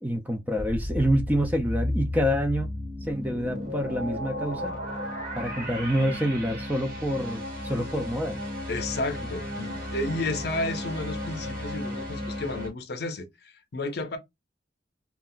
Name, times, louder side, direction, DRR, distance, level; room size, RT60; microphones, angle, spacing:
voice 1, 0.0-4.8 5.4-8.4, equal, 10° right, 0.4 m, -27 dB
sound 1, 0.6-12.7, left 1 dB, 50° right, 1.2 m, -34 dB
voice 2, 8.7-14.2, left 2 dB, 55° left, 0.6 m, -32 dB
2.4 x 2.1 x 3.7 m
head